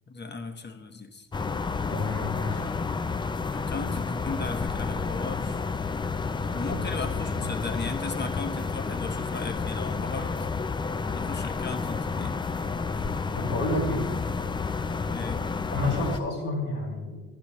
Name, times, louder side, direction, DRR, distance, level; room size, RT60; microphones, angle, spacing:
voice 1, 0.1-1.3 3.5-5.6 6.5-10.3 11.1-12.4 15.1-15.4, left 3 dB, 30° left, 7 dB, 1.1 m, -36 dB
sound 1, 1.3-16.2, left 4 dB, 15° left, 0.3 m, -30 dB
voice 2, 1.9-2.7 6.7-6.8 7.4-7.5 13.3-14.1 15.7-17.2, left 2 dB, 85° left, -4 dB, 3.6 m, -30 dB
11.5 x 10.5 x 3.1 m, 1.1 s
supercardioid pair, 65°, 32 cm